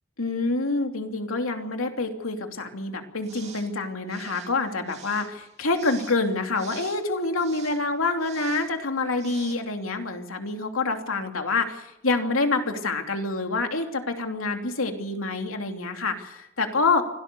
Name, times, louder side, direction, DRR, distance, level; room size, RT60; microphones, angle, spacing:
voice 1, 0.2-17.0, left 3 dB, 80° left, 4 dB, 2.9 m, -27 dB
sound 1, 3.2-3.7 4.1-7.8 8.2-8.7 9.2-9.5, right 6 dB, 35° right, 2.8 m, -46 dB
25.5 x 17.5 x 6.9 m, 0.83 s
head